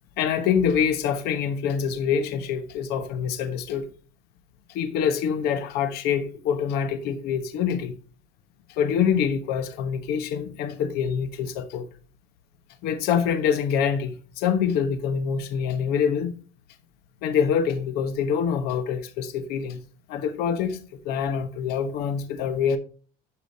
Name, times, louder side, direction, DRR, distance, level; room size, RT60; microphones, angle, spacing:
voice 1, 0.2-3.8 4.7-7.9 8.8-11.9 12.8-16.3 17.2-19.8 20.1-20.8 21.0-22.8, left 7 dB, 60° left, 1.1 m, -25 dB
11.0 x 4.9 x 2.8 m
cardioid pair, 130°, 18 cm